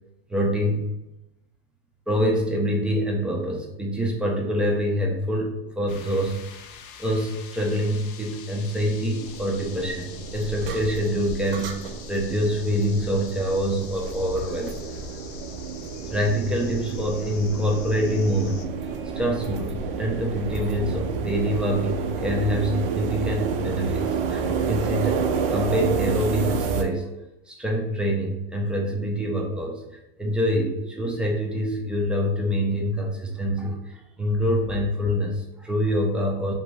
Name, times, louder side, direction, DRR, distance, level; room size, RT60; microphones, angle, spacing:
voice 1, 0.3-0.8 2.1-6.4 7.0-10.1 10.3-11.8 12.1-14.7 16.1-18.6 19.1-25.3 25.5-27.1 27.5-29.8 30.2-36.5, equal, 5° right, 0 dB, 0.3 m, -25 dB
sound 1, 5.9-18.7, left 7 dB, 60° left, 0.5 m, -45 dB
sound 2, 9.2-26.8, right 5 dB, 70° right, 0.5 m, -30 dB
2.6 x 2.6 x 3.1 m, 0.92 s
hypercardioid pair, 125°, 29 cm